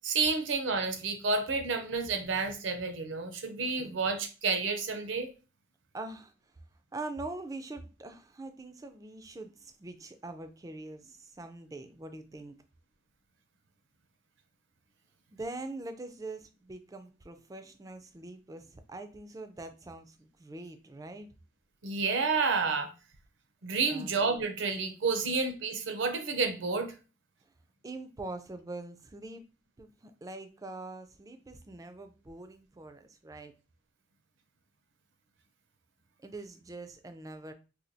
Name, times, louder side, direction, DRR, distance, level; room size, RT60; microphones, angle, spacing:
voice 1, 0.0-5.3 21.8-22.9 23.6-26.9, right 4 dB, 75° right, 0.6 m, -30 dB
voice 2, 5.9-6.3 6.9-12.5 15.3-21.3 23.8-24.1 25.2-25.4 27.8-29.4 29.8-33.5 36.2-37.5, right 2 dB, 20° right, 0.3 m, -43 dB
4.3 x 2.2 x 2.6 m
head